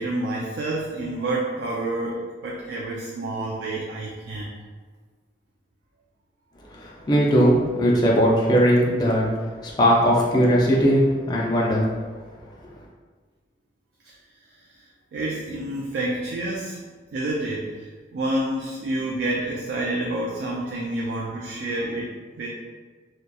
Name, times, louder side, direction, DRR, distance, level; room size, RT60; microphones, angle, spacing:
voice 1, 0.0-4.5 15.1-16.8 17.1-22.1 22.4-22.5, right 1 dB, 75° right, -3 dB, 0.3 m, -28 dB
voice 2, 6.7-9.3 9.6-11.9, equal, 25° left, -4 dB, 0.4 m, -19 dB
2.7 x 2.2 x 2.2 m, 1.4 s
head